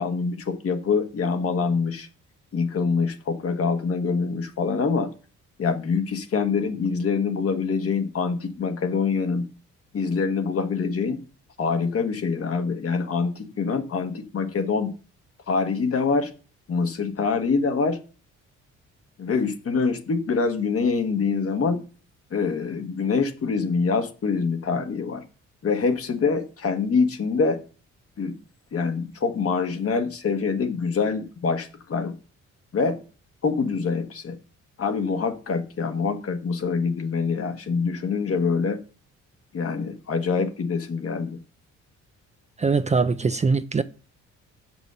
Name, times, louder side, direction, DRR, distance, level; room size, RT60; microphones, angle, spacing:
voice 1, 0.0-2.1 2.5-5.1 5.6-9.5 9.9-11.2 11.6-14.9 15.5-16.3 16.7-18.0 19.2-21.8 22.3-25.2 25.6-27.6 28.2-28.4 28.7-32.1 32.7-33.0 33.4-34.3 34.8-38.8 39.5-41.4, left 5 dB, 50° left, 1.4 m, -25 dB
voice 2, 42.6-43.8, right 4 dB, 25° right, 0.5 m, -22 dB
7.2 x 6.1 x 6.8 m
cardioid pair, 90°, 30 cm